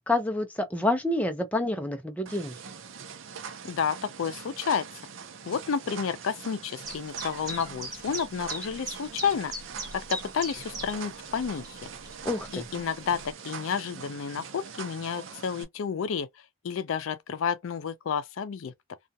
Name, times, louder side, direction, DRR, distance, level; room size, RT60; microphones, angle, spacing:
voice 1, 0.1-2.6 12.2-12.7, left 2 dB, 10° left, 0.5 m, -28 dB
sound 1, 2.3-15.6, right 6 dB, 75° right, 0.5 m, -43 dB
voice 2, 3.6-4.9 5.5-9.5 9.9-11.9 12.5-16.3 16.6-18.7, left 6 dB, 85° left, 0.4 m, -31 dB
Chirp tweet, 6.8-13.3, right 1 dB, 20° right, 1.1 m, -40 dB
2.4 x 2.1 x 2.7 m
head